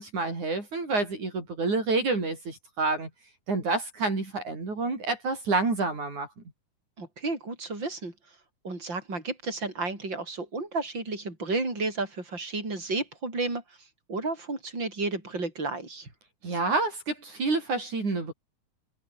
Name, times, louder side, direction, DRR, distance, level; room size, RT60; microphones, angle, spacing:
voice 1, 0.0-3.1 3.5-6.3 16.4-18.3, right 3 dB, 60° right, 8.1 m, -28 dB
voice 2, 7.0-8.1 8.6-16.1, right 3 dB, 30° right, 8.4 m, -32 dB
omnidirectional pair, 3.9 m